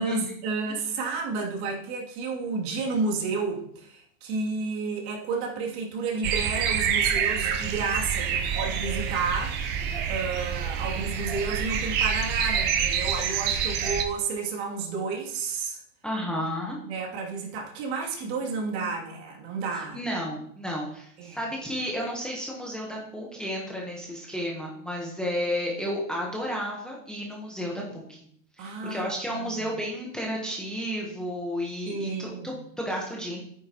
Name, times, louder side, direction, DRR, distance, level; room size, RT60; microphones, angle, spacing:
voice 1, 0.0-9.6 10.1-15.8 16.8-20.0 21.2-21.4 28.6-29.7 31.9-32.5, right 4 dB, 50° right, -1 dB, 2.7 m, -31 dB
sound 1, 6.2-14.0, right 7 dB, 25° right, 0.6 m, -27 dB
voice 2, 16.0-16.8 19.7-28.2 28.6-33.4, equal, ahead, -3 dB, 1.0 m, -32 dB
10.5 x 9.2 x 2.9 m, 0.65 s
supercardioid pair, 165°, 40 cm